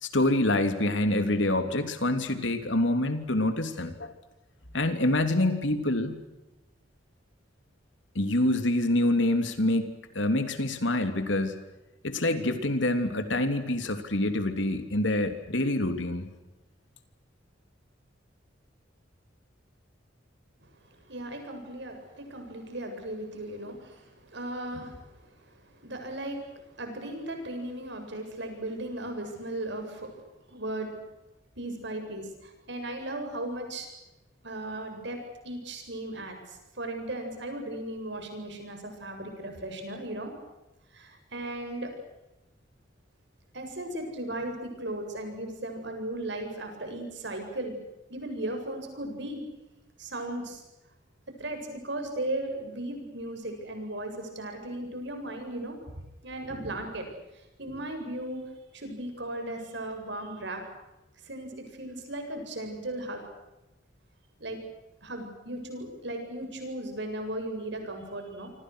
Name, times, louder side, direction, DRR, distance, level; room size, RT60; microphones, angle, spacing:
voice 1, 0.0-4.1 4.7-6.2 8.1-11.6 12.0-16.3, left 1 dB, 75° left, 8 dB, 3.2 m, -26 dB
voice 2, 21.0-30.2 30.5-31.0 31.6-33.9 34.4-35.2 35.4-40.3 40.9-41.9 43.5-47.8 48.1-49.4 50.0-50.6 51.4-57.1 57.6-58.4 58.7-60.6 61.2-63.2 64.4-64.6 65.0-68.5, right 1 dB, 65° right, 5 dB, 7.9 m, -36 dB
28.0 x 25.5 x 6.4 m, 0.99 s
head